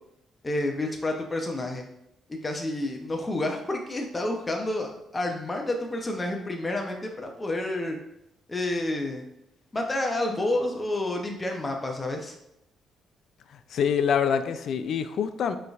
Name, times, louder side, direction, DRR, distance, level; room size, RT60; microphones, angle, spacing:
voice 1, 0.4-1.9 2.3-8.0 8.5-9.3 9.7-12.3, left 1 dB, 20° left, 2 dB, 0.6 m, -29 dB
voice 2, 13.7-15.6, left 7 dB, 65° left, 11 dB, 0.3 m, -25 dB
4.7 x 3.2 x 2.4 m, 0.82 s
cardioid pair, 90°, 0 cm